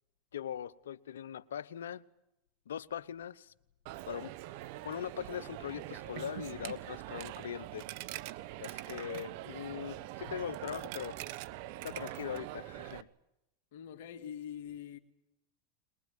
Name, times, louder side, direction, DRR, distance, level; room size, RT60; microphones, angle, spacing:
voice 1, 0.3-2.0 2.7-3.5 4.1-4.3 4.8-7.9 8.6-11.2 11.8-13.1, left 9 dB, 90° left, 0.9 m, -41 dB
Coin (dropping), 3.9-13.0, right 16 dB, 65° right, 1.1 m, -43 dB
voice 2, 13.7-15.0, left 9 dB, 75° left, 1.8 m, -44 dB
23.0 x 21.0 x 9.4 m
hypercardioid pair, 110°, 0 cm